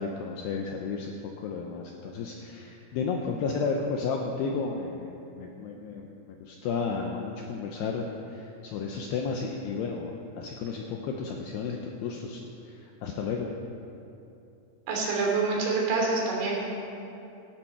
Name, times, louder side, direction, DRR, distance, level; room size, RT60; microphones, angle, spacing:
voice 1, 0.0-13.5, left 5 dB, 85° left, 1 dB, 2.4 m, -33 dB
voice 2, 14.9-16.7, right 3 dB, 65° right, -2 dB, 5.3 m, -26 dB
18.0 x 12.5 x 4.4 m, 2.8 s
omnidirectional pair, 5.7 m